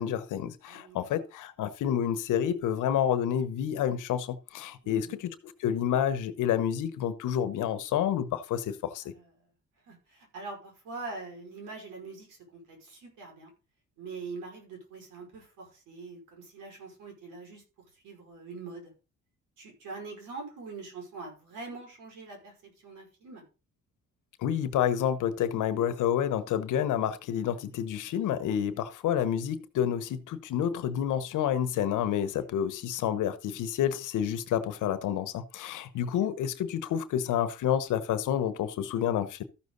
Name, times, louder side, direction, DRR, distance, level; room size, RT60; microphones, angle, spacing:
voice 1, 0.0-5.3 5.6-9.1 24.4-39.4, left 9 dB, 85° left, 1.2 m, -29 dB
voice 2, 0.7-1.0 4.8-5.2 9.1-9.3 9.9-13.5 14.0-17.6 17.9-18.9 19.6-23.4 35.9-36.0, right 3 dB, 90° right, 5.6 m, -43 dB
13.5 x 6.6 x 4.0 m
cardioid pair, 90°, 30 cm